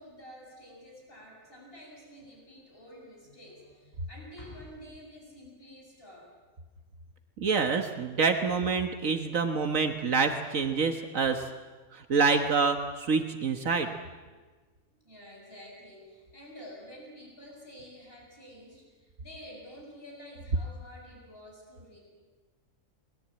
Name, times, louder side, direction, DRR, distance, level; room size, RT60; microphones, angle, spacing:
voice 1, 0.0-6.3 14.3-14.4 14.9-22.0, equal, 45° left, -2 dB, 7.7 m, -49 dB
voice 2, 7.4-11.5 11.9-13.9, right 5 dB, 75° right, 6 dB, 1.8 m, -27 dB
29.5 x 21.5 x 8.9 m, 1.4 s
omnidirectional pair, 1.4 m